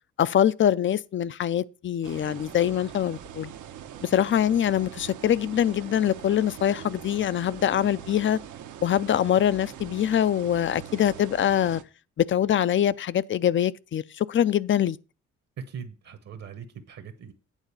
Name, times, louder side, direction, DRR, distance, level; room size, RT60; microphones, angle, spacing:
voice 1, 0.2-3.5 4.0-8.4 8.8-11.8 12.2-15.0, left 10 dB, 40° left, 0.4 m, -24 dB
sound 1, 2.0-11.8, right 10 dB, 80° right, 1.0 m, -42 dB
voice 2, 15.6-17.3, right 6 dB, 55° right, 1.2 m, -40 dB
9.0 x 4.0 x 6.9 m
cardioid pair, 90°, 30 cm